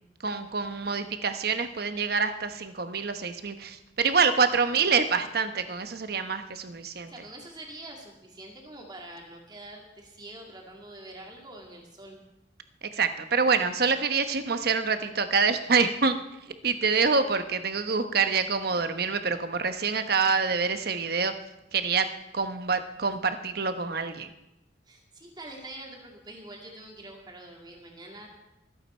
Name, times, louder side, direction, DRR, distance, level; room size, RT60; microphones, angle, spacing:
voice 1, 0.2-7.1 12.9-16.2 16.6-21.3 21.7-22.1 22.3-24.3, right 5 dB, 60° right, 9 dB, 1.0 m, -26 dB
voice 2, 4.3-4.9 7.1-12.2 24.9-28.3, right 1 dB, 25° right, 0 dB, 2.3 m, -45 dB
24.5 x 8.6 x 4.4 m, 0.94 s
head